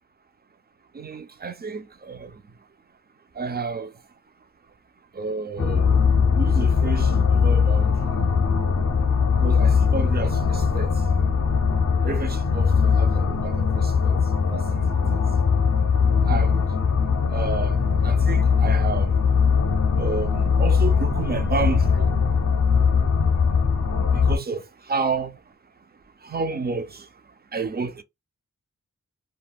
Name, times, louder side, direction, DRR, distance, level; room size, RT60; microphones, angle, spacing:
voice 1, 0.9-2.4 3.4-3.9 5.1-5.9 6.3-8.2 9.3-11.0 12.0-14.8 15.1-15.2 16.2-16.7 17.3-19.1 19.9-22.1 24.1-25.4 26.2-27.1 27.5-28.0, right 4 dB, 35° right, 0.4 m, -31 dB
sound 1, 5.6-24.4, left 5 dB, 55° left, 0.5 m, -20 dB
2.2 x 2.1 x 3.4 m
wide cardioid pair, 95°, 30 cm